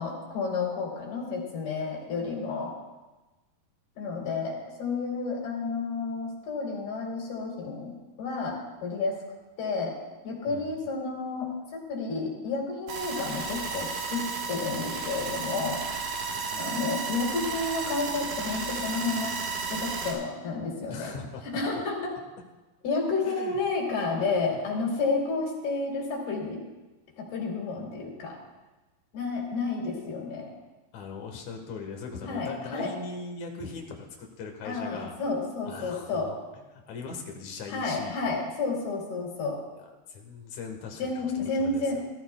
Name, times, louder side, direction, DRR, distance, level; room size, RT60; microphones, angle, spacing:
voice 1, 0.0-2.8 4.0-9.1 9.6-10.0 10.2-14.2 14.5-15.8 16.6-19.3 19.7-21.1 21.4-22.1 22.8-26.6 27.2-28.4 29.1-30.5 32.2-32.9 34.6-36.3 37.7-39.6 41.0-42.0, left 3 dB, 80° left, -3 dB, 4.9 m, -31 dB
sound 1, 12.9-20.1, right 5 dB, 65° right, 3.0 m, -33 dB
voice 2, 20.9-21.6 23.2-23.6 24.0-24.6 30.9-35.2 35.6-36.4 36.7-38.4 40.1-41.1 41.4-42.0, left 4 dB, 60° left, 3 dB, 2.6 m, -40 dB
20.5 x 13.0 x 2.3 m, 1.1 s
omnidirectional pair, 4.3 m